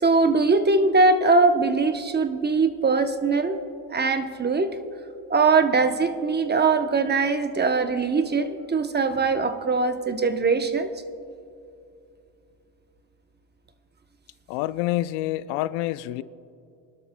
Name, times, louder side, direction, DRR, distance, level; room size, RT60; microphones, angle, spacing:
voice 1, 0.0-3.6 3.9-4.8 5.3-10.9, right 4 dB, 20° right, 0.8 m, -21 dB
voice 2, 14.5-16.2, left 15 dB, 75° left, 0.5 m, -27 dB
22.5 x 12.5 x 2.2 m
supercardioid pair, 85°, 49 cm